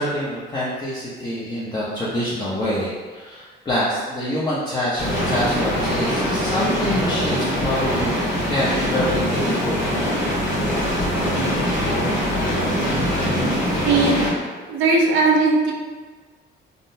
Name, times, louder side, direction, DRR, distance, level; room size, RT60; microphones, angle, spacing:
voice 1, 0.0-8.1 8.4-9.9, equal, 20° left, -9 dB, 0.6 m, -26 dB
sound 1, 5.0-14.3, equal, 70° left, 1.4 m, -22 dB
voice 2, 13.8-14.2 14.7-15.7, right 3 dB, 85° right, 0 dB, 0.5 m, -18 dB
3.6 x 2.1 x 2.6 m, 1.4 s
cardioid pair, 90°, 20 cm